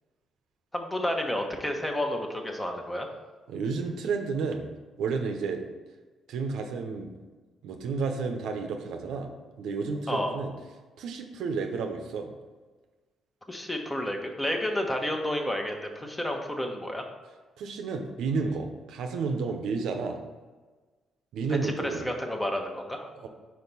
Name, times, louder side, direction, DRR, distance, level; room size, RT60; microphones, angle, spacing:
voice 1, 0.7-3.1 10.1-10.4 13.5-17.0 21.5-23.1, left 1 dB, 15° left, 3 dB, 1.0 m, -31 dB
voice 2, 3.5-4.6 5.0-5.6 6.3-7.1 7.6-9.3 9.6-10.5 11.0-12.3 17.6-20.2 21.3-22.1 23.1-23.3, right 4 dB, 80° right, 4 dB, 0.7 m, -31 dB
4.6 x 4.6 x 5.5 m, 1.3 s
cardioid pair, 90°, 0 cm